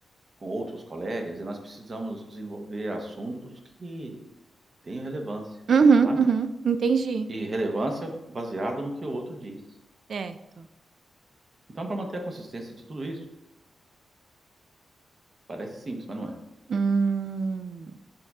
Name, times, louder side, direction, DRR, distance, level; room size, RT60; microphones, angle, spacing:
voice 1, 0.4-3.3 3.8-4.2 4.8-5.4 6.0-6.2 7.3-9.6 11.7-13.2 15.5-16.3, right 1 dB, 35° right, 3 dB, 1.0 m, -33 dB
voice 2, 5.7-7.3 10.1-10.3 16.7-17.9, right 5 dB, 60° right, 11 dB, 0.4 m, -22 dB
5.6 x 5.4 x 3.6 m, 0.97 s
wide cardioid pair, 125°, 0 cm